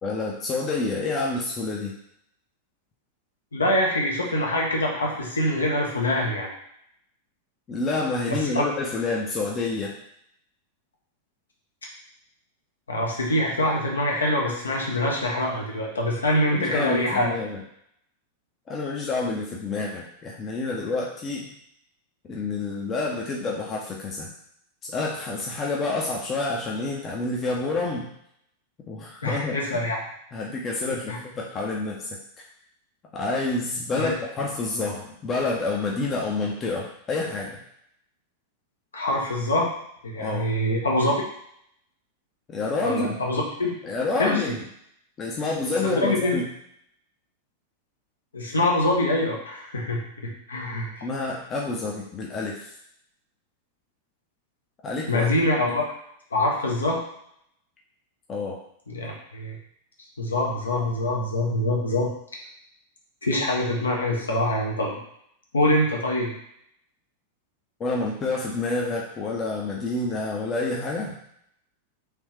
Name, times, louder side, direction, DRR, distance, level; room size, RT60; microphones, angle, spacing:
voice 1, 0.0-2.0 7.7-9.9 16.5-17.6 18.7-21.5 22.3-24.3 24.8-28.1 28.9-29.8 30.3-32.1 32.4-32.5 33.1-37.6 40.2-40.5 42.5-43.2 43.8-44.6 45.2-46.5 51.0-52.7 54.8-55.3 58.3-58.6 67.8-71.2, left 3 dB, 25° left, -2 dB, 0.6 m, -28 dB
voice 2, 3.5-6.5 8.3-8.6 12.9-17.3 29.2-29.9 31.1-31.2 34.0-34.1 38.9-39.7 40.0-41.1 42.8-43.7 44.2-44.4 45.8-46.4 48.3-51.1 55.1-55.9 56.3-57.0 58.9-59.6 60.2-62.1 63.2-65.0 65.5-66.3, left 1 dB, 70° left, -2 dB, 0.9 m, -24 dB
3.3 x 3.0 x 3.2 m, 0.73 s
figure-of-eight pair, 90°, 0 cm